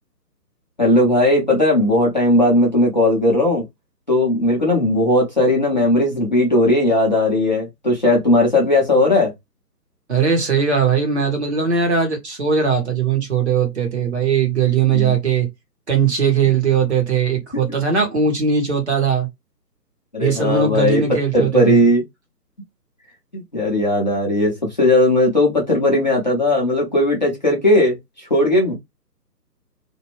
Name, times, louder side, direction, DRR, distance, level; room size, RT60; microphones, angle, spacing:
voice 1, 0.8-3.6 4.1-9.3 14.9-15.1 20.1-21.0 21.3-22.0 23.3-28.7, left 1 dB, 30° left, 0.7 m, -17 dB
voice 2, 10.1-15.5 15.9-19.3 20.2-21.9, right 6 dB, 40° right, 1.2 m, -19 dB
2.5 x 2.3 x 2.9 m
figure-of-eight pair, 155°, 50 cm